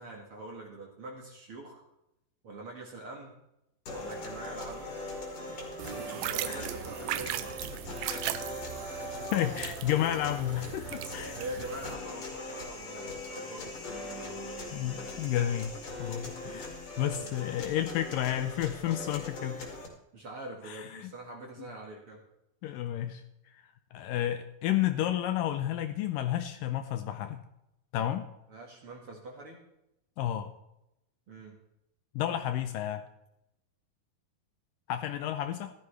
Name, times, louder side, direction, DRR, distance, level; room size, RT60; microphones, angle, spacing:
voice 1, 0.0-1.8 2.4-3.3 3.9-4.9 5.5-7.5 11.4-14.7 16.4-16.8 17.1-17.3 20.1-22.2 28.5-29.6 31.3-31.6, right 2 dB, 50° right, 0 dB, 2.0 m, -44 dB
sound 1, 3.9-19.9, left 2 dB, 45° left, 3.1 m, -41 dB
sound 2, 5.8-11.9, right 13 dB, 90° right, 2.5 m, -38 dB
voice 2, 9.3-11.4 14.7-19.6 20.7-21.1 22.6-23.2 23.5-23.6 23.9-27.4 27.9-28.3 30.2-30.5 32.2-33.1 34.9-35.7, left 11 dB, 80° left, 9 dB, 2.1 m, -31 dB
15.0 x 12.5 x 3.3 m, 0.85 s
omnidirectional pair, 4.3 m